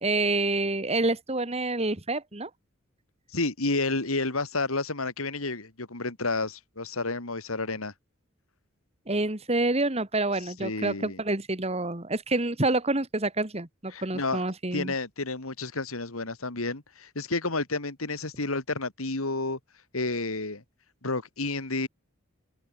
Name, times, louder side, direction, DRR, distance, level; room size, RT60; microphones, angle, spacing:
voice 1, 0.0-2.5 9.1-14.9, right 2 dB, 30° right, 1.9 m, -27 dB
voice 2, 3.3-7.9 10.4-11.2 13.9-14.4 14.7-19.6 19.9-20.6 21.0-21.9, left 3 dB, 85° left, 2.8 m, -30 dB
open air
head